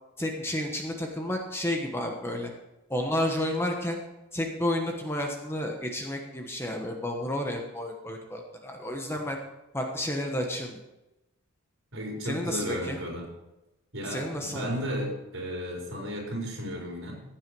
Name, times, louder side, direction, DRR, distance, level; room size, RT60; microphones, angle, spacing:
voice 1, 0.2-2.5 2.9-4.0 4.3-9.4 9.7-10.8 12.2-13.0 14.0-14.8, left 1 dB, 10° left, 2 dB, 1.2 m, -31 dB
voice 2, 11.9-13.2 13.9-17.2, equal, 60° right, -2 dB, 4.8 m, -34 dB
15.5 x 9.0 x 4.7 m, 0.96 s
head